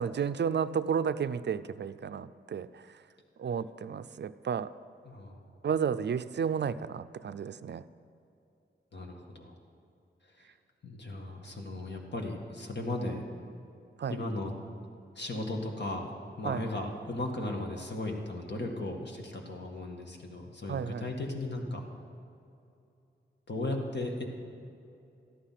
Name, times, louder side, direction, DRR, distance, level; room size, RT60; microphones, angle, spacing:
voice 1, 0.0-2.9 3.4-4.7 5.6-7.8 14.0-14.2 16.4-16.6 20.7-21.1, right 7 dB, 60° right, 13 dB, 0.4 m, -32 dB
voice 2, 5.0-5.4 8.9-9.6 10.2-10.5 10.8-13.2 14.1-14.5 15.2-16.1 16.4-21.9 23.5-24.2, left 2 dB, 60° left, 1 dB, 1.8 m, -36 dB
13.5 x 11.5 x 5.8 m, 2.7 s
wide cardioid pair, 110°, 20 cm